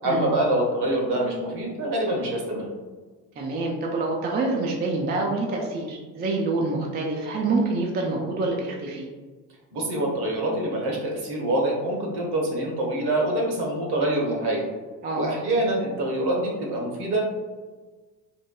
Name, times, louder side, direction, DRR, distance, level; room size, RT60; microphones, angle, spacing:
voice 1, 0.0-2.7 9.7-14.6 15.1-17.2, right 1 dB, 60° right, -1 dB, 1.0 m, -25 dB
voice 2, 3.4-9.1 15.0-15.4, right 3 dB, 25° right, -1 dB, 0.4 m, -26 dB
3.0 x 2.1 x 2.2 m, 1.3 s
hypercardioid pair, 70°, 45 cm